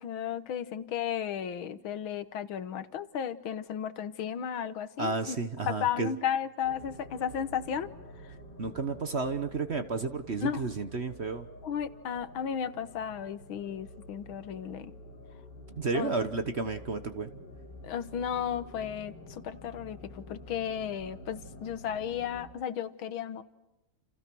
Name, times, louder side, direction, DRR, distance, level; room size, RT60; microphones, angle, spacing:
voice 1, 0.0-5.4 5.7-7.9 10.4-10.6 11.6-14.9 15.9-16.1 17.8-23.4, left 8 dB, 85° left, 13 dB, 2.0 m, -34 dB
voice 2, 5.0-6.1 8.6-11.5 15.7-17.3, right 4 dB, 40° right, 9 dB, 1.2 m, -32 dB
sound 1, 6.6-22.5, left 1 dB, 55° left, 4.4 m, -49 dB
29.5 x 29.5 x 6.2 m, 0.94 s
omnidirectional pair, 2.2 m